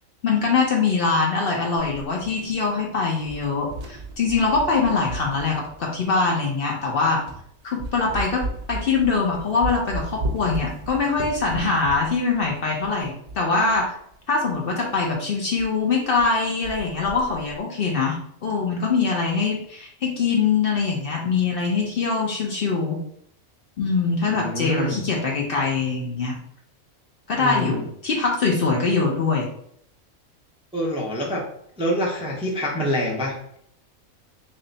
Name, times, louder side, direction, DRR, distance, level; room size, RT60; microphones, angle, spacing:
voice 1, 0.2-7.2 7.6-13.9 14.3-23.0 23.8-26.4 27.3-29.5, left 4 dB, 55° left, 0 dB, 0.7 m, -23 dB
sound 1, 1.8-2.9 3.2-6.2 6.8-6.9 7.3-7.5 7.8-13.9 14.1-14.2 14.5-14.6 15.0-15.2 15.6-15.7 16.0-16.3 16.6-17.6, right 2 dB, 80° right, 0.3 m, -35 dB
voice 2, 24.2-25.0 27.3-27.8 30.7-31.5 31.8-33.3, equal, 5° right, -2 dB, 0.4 m, -26 dB
3.2 x 2.7 x 3.9 m, 0.69 s
omnidirectional pair, 1.4 m